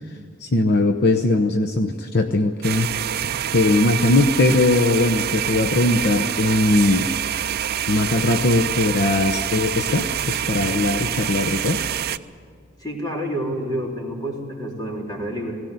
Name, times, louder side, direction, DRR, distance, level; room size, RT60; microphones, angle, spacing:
voice 1, 0.4-2.9 3.5-7.1 7.9-11.8, left 2 dB, 55° left, 5 dB, 0.9 m, -20 dB
sound 1, 2.6-12.2, right 10 dB, 50° right, 0.5 m, -26 dB
voice 2, 12.8-15.6, equal, 20° left, -2 dB, 3.9 m, -28 dB
17.5 x 17.5 x 9.5 m, 2.1 s
head